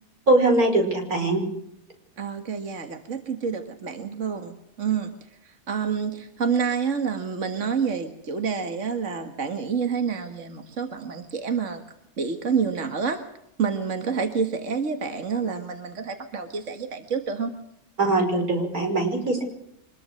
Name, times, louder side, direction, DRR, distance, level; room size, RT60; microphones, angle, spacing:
voice 1, 0.3-1.4 18.0-19.4, right 2 dB, 85° right, 3 dB, 6.0 m, -21 dB
voice 2, 2.2-5.1 5.4-11.8 12.2-13.2 13.6-17.5, right 6 dB, 60° right, 6 dB, 2.0 m, -28 dB
25.0 x 21.0 x 6.5 m, 0.78 s
omnidirectional pair, 1.5 m